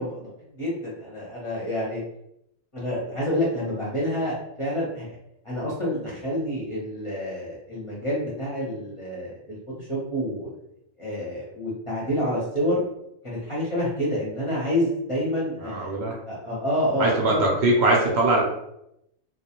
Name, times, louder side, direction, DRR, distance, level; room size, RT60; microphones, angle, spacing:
voice 1, 0.0-2.0 2.7-5.2 5.4-10.5 11.0-12.8 13.2-15.9 16.3-17.5, equal, 30° left, -6 dB, 0.6 m, -28 dB
voice 2, 15.6-16.2 17.0-18.4, right 2 dB, 65° right, -2 dB, 0.7 m, -21 dB
2.3 x 2.1 x 2.8 m, 0.80 s
omnidirectional pair, 1.4 m